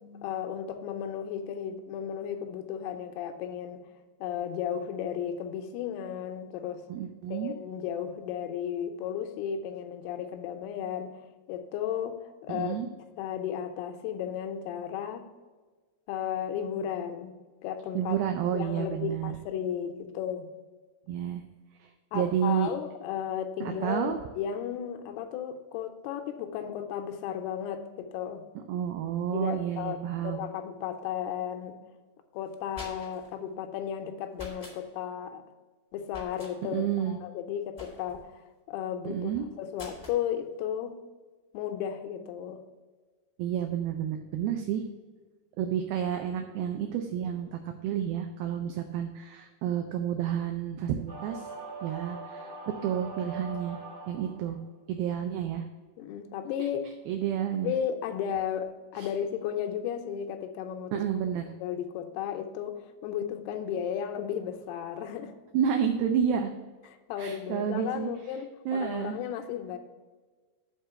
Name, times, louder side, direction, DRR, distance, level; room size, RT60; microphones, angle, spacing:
voice 1, 0.0-3.9 4.2-6.8 7.3-11.1 11.5-12.8 13.2-15.3 16.1-17.3 17.6-18.2 18.5-20.5 22.1-28.5 29.3-31.8 32.3-35.4 35.9-38.4 38.7-41.0 41.5-42.6 56.0-56.9 57.6-61.0 61.6-65.3 66.9-69.8, left 9 dB, 80° left, 6 dB, 2.6 m, -34 dB
voice 2, 6.9-7.5 12.5-12.9 18.0-19.3 21.1-21.4 22.1-22.7 23.6-24.2 28.7-30.4 36.7-37.2 39.1-39.5 43.4-44.8 45.6-51.5 51.8-52.5 52.8-53.8 54.1-54.6 54.9-55.6 56.6-56.7 57.1-57.7 59.0-59.1 60.9-61.5 65.5-66.5 67.2-68.1 68.7-69.2, right 9 dB, 80° right, 5 dB, 2.3 m, -30 dB
sound 1, 32.5-33.3 34.3-34.8 36.1-36.5 37.8-38.3 39.7-40.2, left 2 dB, 45° left, 0.4 m, -45 dB
sound 2, 51.1-54.5, right 3 dB, 40° right, 0.6 m, -42 dB
8.0 x 3.8 x 6.6 m, 1.4 s
omnidirectional pair, 4.6 m